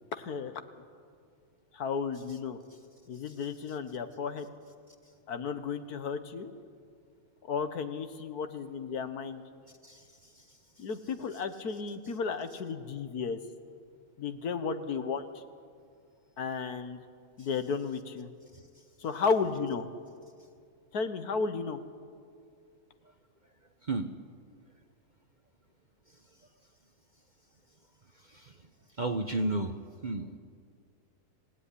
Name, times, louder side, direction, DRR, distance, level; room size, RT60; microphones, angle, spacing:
voice 1, 0.1-0.5 1.7-2.6 3.1-4.5 5.3-6.5 7.4-9.4 10.8-13.4 14.2-15.4 16.4-17.0 17.4-18.3 19.0-19.9 20.9-21.8, left 5 dB, 70° left, 10 dB, 1.7 m, -33 dB
voice 2, 29.0-29.7 30.0-30.4, right 2 dB, 35° right, 8 dB, 0.9 m, -32 dB
26.0 x 17.0 x 10.0 m, 2.2 s
omnidirectional pair, 1.7 m